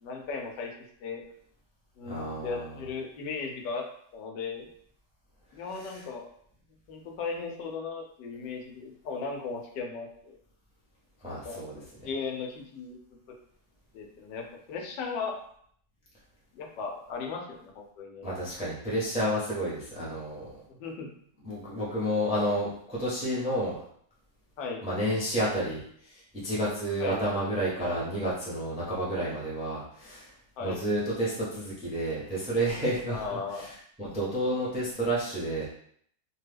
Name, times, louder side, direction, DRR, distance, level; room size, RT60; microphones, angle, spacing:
voice 1, 0.0-0.7 1.0-1.2 2.0-3.8 4.1-4.7 5.5-6.2 6.9-10.4 11.3-13.0 13.9-15.4 16.5-18.3 20.7-21.1 24.6-24.8 27.0-27.3 30.6-30.8 33.1-33.7, left 4 dB, 85° left, 1 dB, 1.3 m, -36 dB
voice 2, 2.0-2.7 5.8-6.0 11.2-11.7 18.2-20.5 21.4-23.8 24.8-30.3 30.6-33.7 34.0-35.6, right 1 dB, 10° right, -7 dB, 0.4 m, -30 dB
3.0 x 2.2 x 3.3 m, 0.64 s
omnidirectional pair, 1.8 m